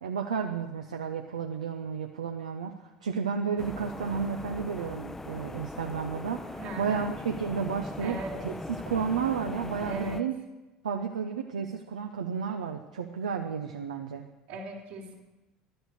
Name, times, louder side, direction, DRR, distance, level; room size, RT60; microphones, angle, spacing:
voice 1, 0.0-10.4 10.8-14.2, right 6 dB, 80° right, 4 dB, 0.6 m, -32 dB
sound 1, 3.6-10.2, left 2 dB, 10° left, 0.6 m, -40 dB
voice 2, 6.6-7.0 8.0-8.3 9.8-10.2 14.5-15.1, right 1 dB, 65° right, -1 dB, 2.7 m, -38 dB
11.5 x 7.9 x 6.5 m, 1.1 s
figure-of-eight pair, 65°, 4 cm